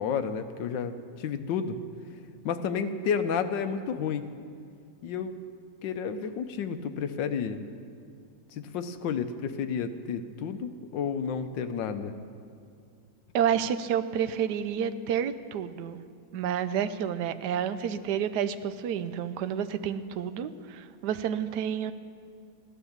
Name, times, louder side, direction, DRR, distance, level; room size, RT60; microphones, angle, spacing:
voice 1, 0.0-1.8 2.4-4.2 5.0-5.3 5.8-7.6 8.5-12.2, left 6 dB, 70° left, 9 dB, 1.3 m, -31 dB
voice 2, 13.3-16.0 16.3-21.9, right 8 dB, 70° right, 12 dB, 1.0 m, -29 dB
15.5 x 11.0 x 7.1 m, 2.2 s
omnidirectional pair, 2.2 m